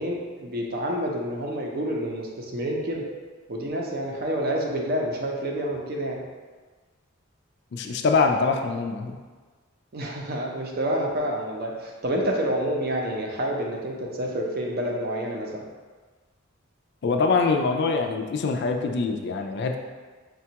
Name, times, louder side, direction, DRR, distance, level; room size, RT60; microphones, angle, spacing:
voice 1, 0.0-3.0 3.5-6.2 9.9-15.6, right 1 dB, 50° right, 0 dB, 0.6 m, -28 dB
voice 2, 7.7-9.2 17.0-19.8, left 4 dB, 55° left, 4 dB, 0.4 m, -24 dB
5.1 x 2.3 x 2.8 m, 1.4 s
head